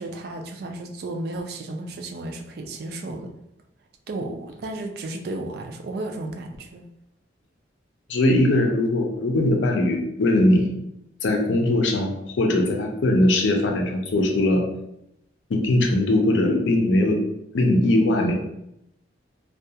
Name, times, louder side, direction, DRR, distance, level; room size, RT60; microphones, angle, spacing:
voice 1, 0.0-3.3 4.1-6.9, right 2 dB, 55° right, 3 dB, 0.3 m, -33 dB
voice 2, 8.1-10.7 11.2-14.6 15.5-17.2 17.5-18.3, left 1 dB, 80° left, 2 dB, 0.5 m, -20 dB
2.3 x 2.2 x 2.7 m, 0.81 s
head